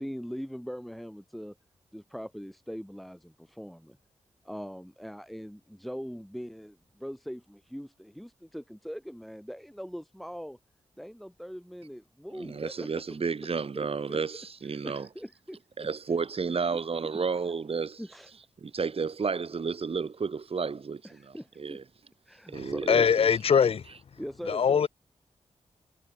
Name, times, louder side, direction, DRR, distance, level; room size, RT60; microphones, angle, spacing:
voice 1, 0.0-1.5 1.9-4.0 4.4-10.6 11.0-13.2 13.8-14.2 14.6-15.6 18.0-18.3 21.0-21.8 22.3-23.0 24.2-24.7, equal, ahead, 3.6 m, -41 dB
voice 2, 12.3-15.1 15.8-18.0 18.6-21.8 22.5-23.3, right 5 dB, 55° right, 4.3 m, -32 dB
voice 3, 22.9-23.8 24.5-24.9, left 7 dB, 55° left, 0.6 m, -22 dB
wide cardioid pair, 90°, 12 cm